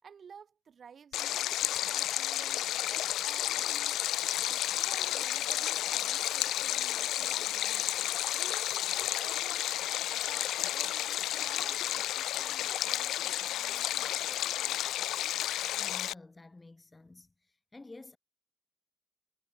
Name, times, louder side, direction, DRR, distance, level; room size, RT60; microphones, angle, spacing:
voice 1, 0.0-4.0 4.5-7.9 8.3-14.9, right 7 dB, 50° right, 3.7 m, -53 dB
Stream, 1.1-16.1, left 13 dB, 80° left, 0.6 m, -32 dB
voice 2, 15.8-17.3 17.7-18.2, left 2 dB, 20° left, 4.5 m, -50 dB
cardioid pair, 90°, 0 cm